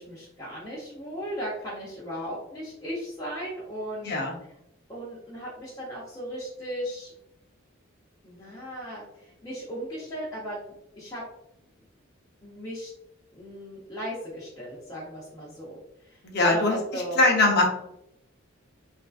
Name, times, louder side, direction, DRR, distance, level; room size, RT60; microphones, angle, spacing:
voice 1, 0.0-4.1 4.9-7.1 8.2-10.6 11.0-11.3 12.4-12.9 13.3-15.8 16.0-17.2, equal, 20° left, -9 dB, 0.7 m, -37 dB
voice 2, 4.0-4.4 16.2-17.7, left 2 dB, 50° left, 1 dB, 0.7 m, -22 dB
3.5 x 2.5 x 2.4 m, 0.80 s
head